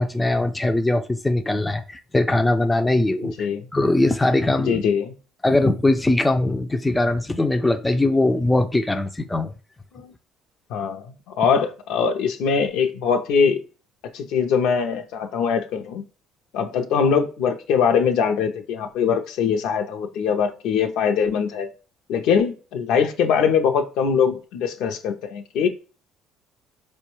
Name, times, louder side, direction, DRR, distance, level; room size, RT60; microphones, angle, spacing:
voice 1, 0.0-4.8 5.4-9.5, left 2 dB, 10° left, 7 dB, 0.4 m, -21 dB
voice 2, 3.2-3.7 4.7-5.1 9.9-10.1 10.7-13.6 14.1-16.0 16.5-21.7 22.1-25.7, left 6 dB, 75° left, 5 dB, 0.5 m, -22 dB
4.5 x 2.2 x 3.0 m, 0.35 s
supercardioid pair, 95°, 0 cm